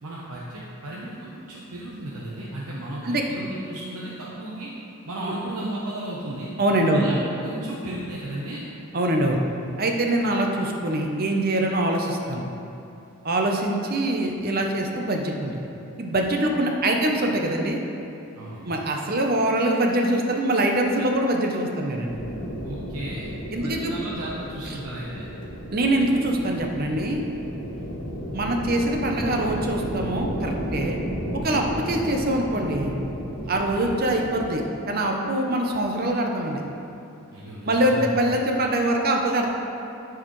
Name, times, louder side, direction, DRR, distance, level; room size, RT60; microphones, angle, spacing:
voice 1, 0.0-4.7 5.0-6.5 6.9-8.6 18.4-18.7 22.6-23.3 23.6-25.3 27.7-27.8 33.4-33.7 37.3-38.2, right 1 dB, 85° right, -6 dB, 0.9 m, -34 dB
voice 2, 6.6-7.1 8.9-9.4 9.8-12.4 13.2-15.6 16.0-17.8 18.6-22.2 23.5-23.9 25.7-27.2 28.3-31.0 31.4-32.9 33.5-36.6 37.6-39.5, right 1 dB, 40° right, 2 dB, 0.7 m, -24 dB
sound 1, 22.1-34.5, equal, 50° left, 1.3 m, -33 dB
12.0 x 4.7 x 3.1 m, 2.8 s
head